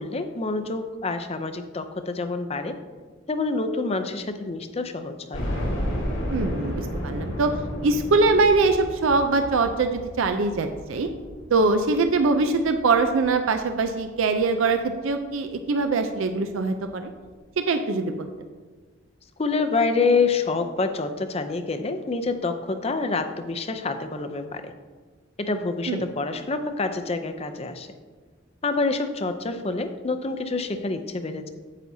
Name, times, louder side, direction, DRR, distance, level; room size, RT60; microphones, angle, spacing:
voice 1, 0.0-2.8 3.3-5.5 19.4-24.7 25.4-27.9 28.6-31.5, left 3 dB, 30° left, 8 dB, 0.5 m, -27 dB
sound 1, 5.3-14.2 14.7-14.8 15.2-15.3 16.5-16.6 16.9-17.0, equal, 80° left, 2.1 m, -33 dB
voice 2, 6.3-7.6 7.8-11.1 11.5-17.1 17.6-18.3 25.9-26.1, right 3 dB, 80° right, 7 dB, 0.5 m, -23 dB
9.1 x 8.7 x 2.7 m, 1.4 s
head